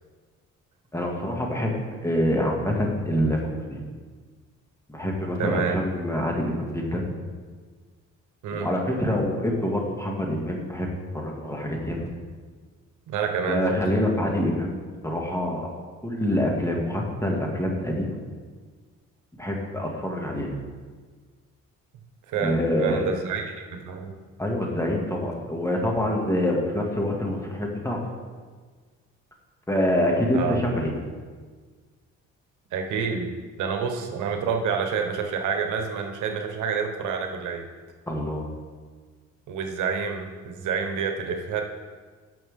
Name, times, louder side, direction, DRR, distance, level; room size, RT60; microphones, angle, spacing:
voice 1, 0.9-3.8 4.9-7.1 8.5-12.1 13.5-15.7 16.0-18.2 19.4-20.5 22.4-23.1 24.4-28.0 29.7-30.9 38.1-38.5, left 1 dB, 10° left, -1 dB, 2.1 m, -26 dB
voice 2, 5.4-5.8 8.4-8.7 13.1-13.8 22.3-22.5 22.8-24.1 30.3-30.7 32.7-33.3 33.6-37.6 39.5-41.6, right 6 dB, 80° right, 4 dB, 1.2 m, -28 dB
16.5 x 6.1 x 3.7 m, 1.5 s
cardioid pair, 90°, 30 cm